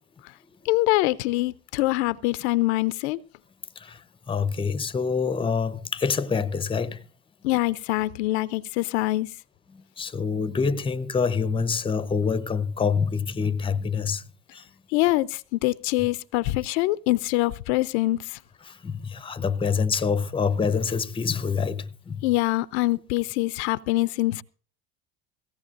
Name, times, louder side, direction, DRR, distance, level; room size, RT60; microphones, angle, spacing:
voice 1, 0.6-3.2 7.4-9.3 14.9-18.4 22.2-24.4, left 18 dB, 70° left, 0.6 m, -24 dB
voice 2, 3.8-7.1 9.7-14.3 14.5-14.7 18.6-22.3, left 5 dB, 15° left, 0.7 m, -26 dB
18.0 x 16.0 x 2.5 m
hypercardioid pair, 80°, 34 cm